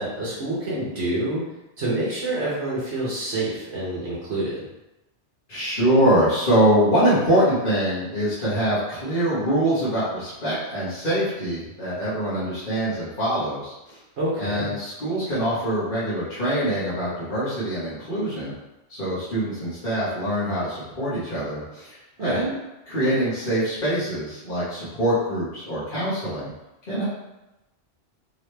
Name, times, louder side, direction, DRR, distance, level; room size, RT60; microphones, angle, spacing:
voice 1, 0.0-1.4 1.8-4.6 14.2-14.7 22.2-22.4, right 1 dB, 65° right, -7 dB, 1.2 m, -27 dB
voice 2, 5.5-14.0 14.4-18.5 18.9-22.5 22.9-26.5 26.9-27.0, right 1 dB, 45° left, -12 dB, 1.6 m, -24 dB
3.8 x 3.1 x 3.3 m, 0.98 s
omnidirectional pair, 1.2 m